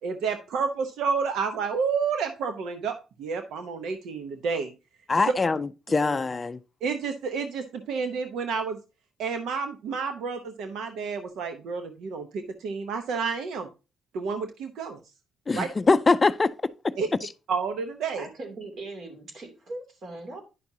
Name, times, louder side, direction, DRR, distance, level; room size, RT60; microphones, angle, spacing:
voice 1, 0.0-4.7 6.8-8.8 9.2-13.7 14.1-15.0 15.5-15.7 17.0-17.1 17.5-18.3, right 5 dB, 80° right, 0.8 m, -30 dB
voice 2, 5.1-6.6 15.5-16.5 16.8-16.9 17.2-17.3, left 3 dB, 30° left, 0.4 m, -23 dB
voice 3, 5.9-6.2 18.1-20.4, right 2 dB, 55° right, 2.8 m, -40 dB
10.0 x 5.9 x 2.8 m
cardioid pair, 90°, 0 cm